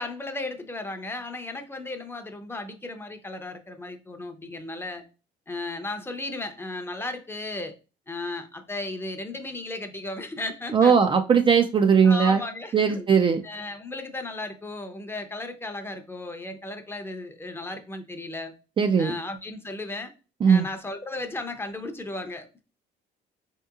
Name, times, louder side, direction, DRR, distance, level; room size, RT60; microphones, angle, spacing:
voice 1, 0.0-5.0 5.5-7.7 8.1-11.0 12.0-13.0 13.4-18.6 19.0-20.1 20.5-22.6, left 2 dB, 15° left, 7 dB, 0.6 m, -35 dB
voice 2, 10.7-12.4 12.7-13.4 18.8-19.1 20.4-20.7, right 6 dB, 30° right, 6 dB, 0.3 m, -19 dB
4.4 x 2.8 x 2.3 m, 0.32 s
cardioid pair, 110°, 17 cm